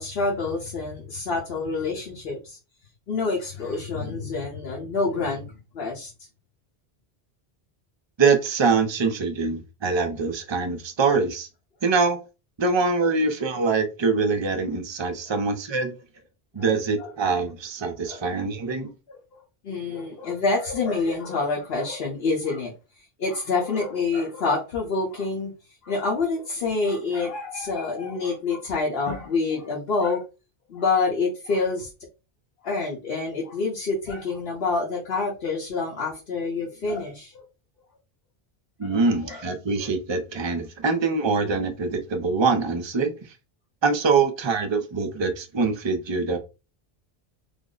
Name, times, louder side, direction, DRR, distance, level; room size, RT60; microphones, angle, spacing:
voice 1, 0.0-2.6 3.1-5.5 5.7-6.1 16.6-16.7 17.0-17.1 18.1-18.2 19.1-19.2 19.6-22.7 23.2-25.5 25.8-30.2 30.7-31.9 32.6-37.4 38.8-39.4 39.8-39.9, left 3 dB, 70° left, 1.1 m, -27 dB
voice 2, 8.2-11.5 11.8-12.2 12.6-15.9 16.5-18.9 38.8-43.1 43.8-46.4, right 4 dB, 35° right, 0.5 m, -24 dB
3.5 x 2.0 x 3.8 m
omnidirectional pair, 1.1 m